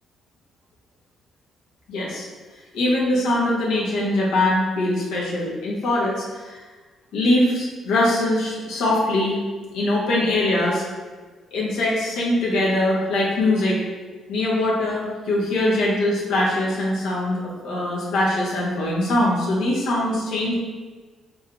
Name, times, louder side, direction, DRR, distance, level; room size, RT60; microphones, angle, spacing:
voice 1, 1.9-2.3 2.7-6.6 7.1-9.4 9.7-10.8 11.5-13.8 14.3-20.5, left 1 dB, 90° left, -5 dB, 1.0 m, -22 dB
4.2 x 3.2 x 2.4 m, 1.4 s
cardioid pair, 90°, 0 cm